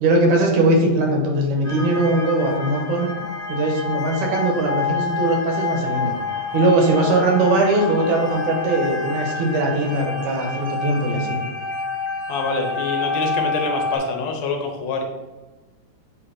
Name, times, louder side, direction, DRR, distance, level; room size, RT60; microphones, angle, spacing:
voice 1, 0.0-3.1 3.5-6.1 6.5-11.4, right 2 dB, 75° right, 1 dB, 2.5 m, -20 dB
sound 1, 1.6-14.0, left 4 dB, 45° right, 1.3 m, -28 dB
voice 2, 12.3-15.0, left 4 dB, 70° left, 2 dB, 1.8 m, -25 dB
7.8 x 2.8 x 5.0 m, 1.2 s
omnidirectional pair, 3.5 m